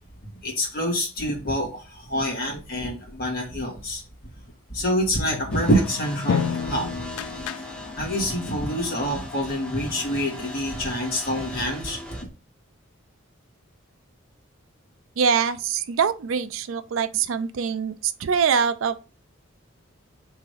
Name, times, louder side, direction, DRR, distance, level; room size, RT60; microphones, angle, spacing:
voice 1, 0.4-4.0 4.7-7.2 8.0-12.3, equal, 45° left, 1.8 m, -26 dB
sound 1, 5.2-8.2, left 7 dB, 80° left, 0.3 m, -30 dB
sound 2, 5.5-12.2, left 2 dB, 5° left, 0.6 m, -39 dB
voice 2, 15.2-19.0, right 6 dB, 70° right, 0.4 m, -24 dB
3.7 x 2.9 x 4.8 m
head